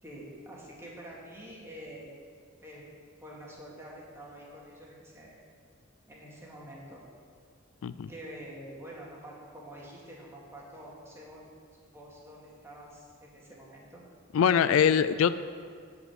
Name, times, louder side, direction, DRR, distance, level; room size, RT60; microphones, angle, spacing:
voice 1, 0.0-2.1 2.6-2.8 3.2-5.4 6.1-7.0 8.1-11.5 11.9-14.0, equal, 15° right, -4 dB, 2.2 m, -47 dB
voice 2, 14.3-15.5, left 7 dB, 80° left, 14 dB, 0.3 m, -23 dB
10.5 x 5.3 x 8.0 m, 2.2 s
head